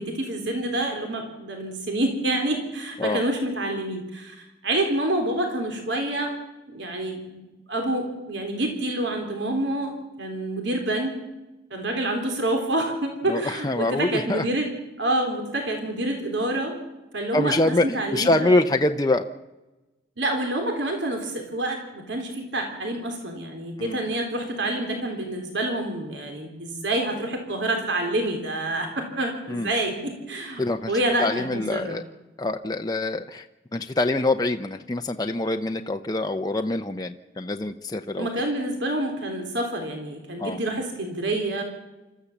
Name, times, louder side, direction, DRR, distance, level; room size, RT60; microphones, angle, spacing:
voice 1, 0.0-6.3 6.7-7.4 7.7-9.9 10.2-11.2 11.7-14.7 15.0-16.7 17.1-18.6 20.2-32.0 38.2-41.6, right 1 dB, 70° right, 3 dB, 3.6 m, -27 dB
voice 2, 13.3-14.5 17.3-19.3 23.8-24.0 29.5-29.7 30.6-30.9 31.2-32.0 32.4-33.5 33.7-38.3 40.4-40.6, left 2 dB, 20° left, 5 dB, 0.7 m, -25 dB
26.5 x 14.0 x 7.2 m, 1.1 s
head